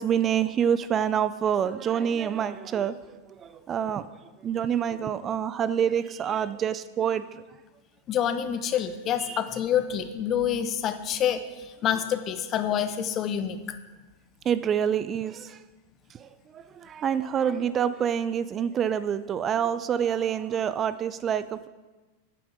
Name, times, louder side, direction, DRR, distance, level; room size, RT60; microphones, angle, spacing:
voice 1, 0.0-4.1 4.4-7.4 9.3-9.4 14.5-15.6 16.1-21.7, right 8 dB, 25° right, 14 dB, 0.4 m, -27 dB
voice 2, 8.1-13.8, left 9 dB, 30° left, 10 dB, 0.9 m, -27 dB
9.0 x 8.5 x 6.5 m, 1.2 s
figure-of-eight pair, 90°, 0 cm